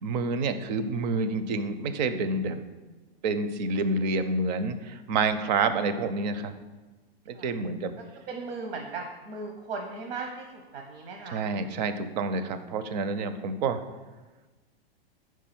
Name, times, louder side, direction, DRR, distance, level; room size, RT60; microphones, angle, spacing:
voice 1, 0.0-2.6 3.2-6.5 7.3-7.9 11.3-13.8, right 3 dB, 45° right, 10 dB, 0.5 m, -28 dB
voice 2, 8.3-11.4, right 4 dB, 75° right, 3 dB, 1.0 m, -37 dB
4.8 x 4.6 x 5.9 m, 1.2 s
hypercardioid pair, 150°, 30 cm